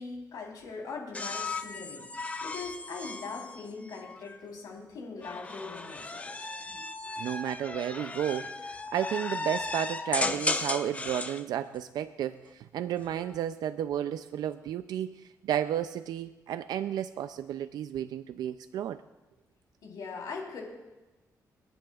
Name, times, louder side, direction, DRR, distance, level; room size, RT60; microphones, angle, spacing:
voice 1, 0.0-6.5 19.8-20.6, left 4 dB, 80° left, -1 dB, 3.8 m, -41 dB
sound 1, 1.1-4.4 5.2-11.4 12.9-13.4, left 3 dB, 20° left, 0.7 m, -35 dB
voice 2, 7.2-19.0, right 10 dB, 85° right, 11 dB, 0.4 m, -32 dB
29.5 x 10.5 x 2.4 m, 1.1 s
cardioid pair, 125°, 7 cm